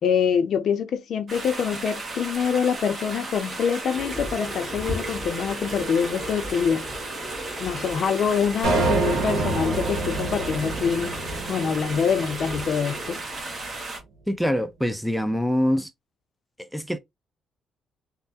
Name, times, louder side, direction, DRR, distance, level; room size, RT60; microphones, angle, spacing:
voice 1, 0.0-6.8 7.6-11.2 11.5-13.2, left 7 dB, 65° left, 0.6 m, -25 dB
sound 1, 1.3-14.0, right 2 dB, 35° right, 1.2 m, -35 dB
sound 2, 3.9-13.2, equal, 20° right, 1.6 m, -38 dB
sound 3, 8.6-13.1, right 3 dB, 70° right, 1.0 m, -27 dB
voice 2, 14.3-15.9 16.6-17.0, equal, ahead, 0.5 m, -24 dB
3.3 x 2.1 x 2.6 m
cardioid pair, 90°, 0 cm